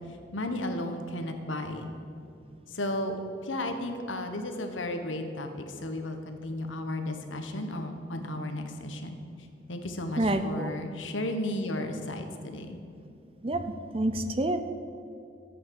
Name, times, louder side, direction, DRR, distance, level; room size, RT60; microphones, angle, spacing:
voice 1, 0.3-1.9 2.7-3.2 3.4-9.2 9.7-12.8, left 1 dB, 90° left, 5 dB, 1.4 m, -34 dB
voice 2, 10.2-10.7 13.4-13.6 13.9-14.6, right 1 dB, 30° right, 9 dB, 0.6 m, -27 dB
13.5 x 8.5 x 6.6 m, 2.6 s
head